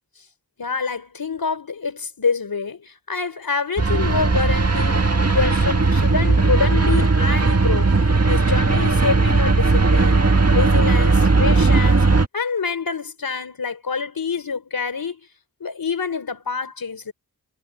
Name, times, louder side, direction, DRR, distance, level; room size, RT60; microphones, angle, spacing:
voice 1, 0.6-7.9 8.2-10.2 10.5-15.2 15.6-17.1, left 5 dB, 75° left, 4.1 m, -26 dB
sound 1, 3.8-12.3, right 3 dB, 45° right, 1.9 m, -17 dB
cardioid pair, 45°, 36 cm